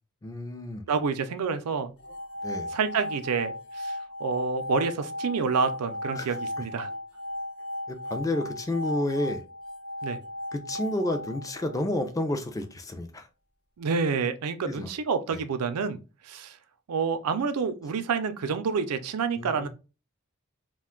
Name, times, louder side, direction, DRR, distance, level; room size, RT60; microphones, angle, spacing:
voice 1, 0.2-0.8 2.4-2.7 6.1-6.7 7.9-9.4 10.5-13.3 14.7-14.9 15.3-15.4 19.4-19.7, left 1 dB, 15° left, 0.3 m, -31 dB
voice 2, 0.9-1.9 2.7-6.9 10.0-10.2 13.8-16.0 16.2-16.6 16.9-19.7, right 5 dB, 85° right, 0.4 m, -28 dB
sound 1, 2.0-12.1, left 1 dB, 65° left, 0.6 m, -36 dB
2.5 x 2.2 x 3.6 m
head